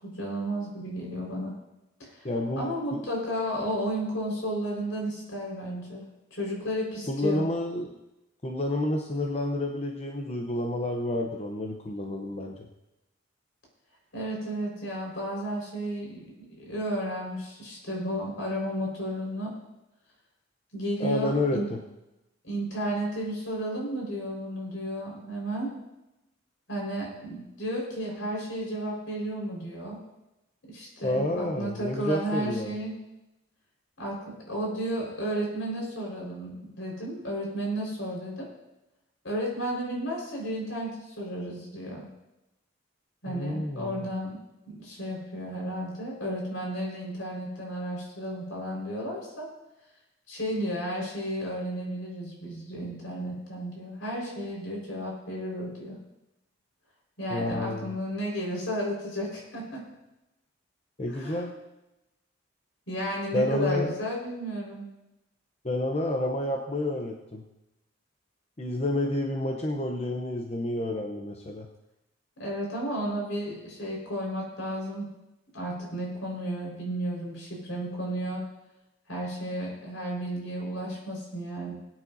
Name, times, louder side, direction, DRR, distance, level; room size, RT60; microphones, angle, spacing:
voice 1, 0.0-1.5 2.0-2.3 2.5-6.0 6.3-7.4 14.1-19.5 20.7-21.7 22.4-25.7 26.7-30.0 30.7-32.9 34.0-38.5 39.2-42.1 43.2-49.5 50.3-56.0 57.2-59.8 61.1-61.5 62.9-64.9 72.4-75.1 75.5-78.4 79.1-81.7, equal, 75° left, -2 dB, 4.8 m, -33 dB
voice 2, 2.2-3.0 7.1-8.0 8.4-12.6 21.0-21.8 31.0-32.7 43.3-44.1 57.3-58.0 61.0-61.5 63.3-63.9 65.6-67.4 68.6-71.7, left 1 dB, 30° left, 2 dB, 0.8 m, -29 dB
21.0 x 9.2 x 2.7 m, 0.94 s
head